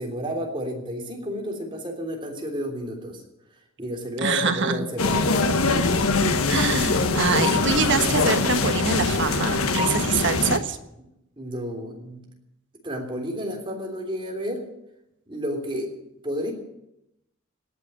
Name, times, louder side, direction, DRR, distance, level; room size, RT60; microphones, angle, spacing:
voice 1, 0.0-3.2 3.8-5.6 11.4-12.2 12.8-14.7 15.3-15.9 16.2-16.5, equal, 25° right, 1 dB, 3.3 m, -31 dB
voice 2, 4.2-4.9 6.5-10.8, right 5 dB, 60° right, 8 dB, 1.4 m, -25 dB
sound 1, 5.0-10.6, left 3 dB, 85° left, 1.4 m, -22 dB
18.5 x 7.7 x 9.9 m, 0.86 s
head